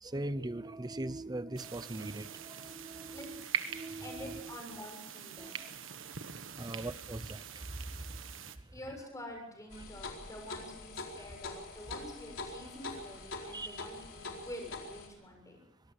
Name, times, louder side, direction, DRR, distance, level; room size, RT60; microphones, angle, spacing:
voice 1, 0.0-3.4 3.7-4.6 5.4-5.7 6.6-7.7 11.2-11.3 13.5-13.9, right 2 dB, 20° right, 0.8 m, -41 dB
sound 1, 1.6-8.6, right 8 dB, 90° right, 1.5 m, -43 dB
voice 2, 2.9-3.3 4.0-5.6 8.7-15.6, left 1 dB, 15° left, 7.1 m, -47 dB
sound 2, 9.7-15.1, left 3 dB, 85° left, 4.4 m, -44 dB
25.0 x 18.5 x 6.5 m
head